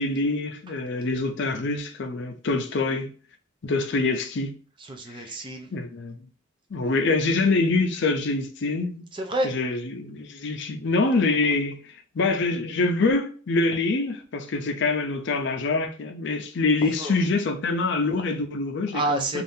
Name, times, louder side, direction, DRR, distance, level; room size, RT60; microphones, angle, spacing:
voice 1, 0.0-3.1 3.6-4.5 5.1-5.3 5.7-6.3 6.7-9.0 9.4-19.4, left 3 dB, 55° left, 0.5 m, -25 dB
voice 2, 4.8-5.7 6.8-6.9 9.1-9.5 17.0-17.2 18.9-19.4, right 1 dB, 25° right, 0.4 m, -29 dB
2.7 x 2.4 x 3.4 m
head